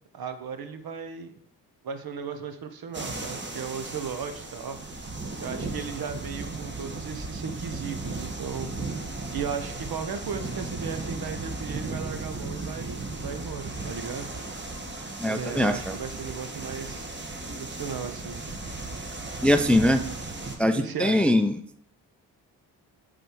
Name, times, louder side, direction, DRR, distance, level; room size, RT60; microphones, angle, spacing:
voice 1, 0.1-1.4 1.8-4.8 5.4-8.7 9.3-14.3 15.3-17.1 17.5-18.4 20.8-21.4, right 6 dB, 50° right, 8 dB, 1.1 m, -36 dB
sound 1, 2.9-20.6, right 2 dB, 25° right, 1.5 m, -36 dB
voice 2, 15.2-15.9 19.4-20.0 20.6-21.6, left 1 dB, 5° left, 8 dB, 0.5 m, -22 dB
7.7 x 4.1 x 4.7 m, 0.67 s
hypercardioid pair, 45°, 45 cm